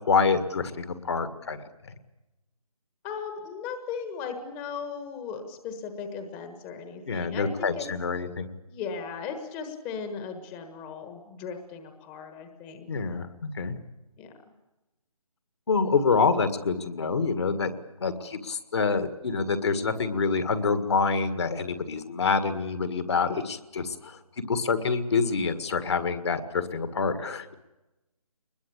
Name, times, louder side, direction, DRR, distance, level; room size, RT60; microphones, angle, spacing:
voice 1, 0.0-1.9 7.1-8.5 12.9-13.8 15.7-17.7 18.0-24.2 24.5-27.5, left 5 dB, 45° left, 10 dB, 1.9 m, -26 dB
voice 2, 3.0-7.9 8.7-12.9 14.2-14.3, left 6 dB, 15° left, 7 dB, 1.4 m, -37 dB
23.0 x 21.0 x 8.5 m, 1.0 s
figure-of-eight pair, 155°, 19 cm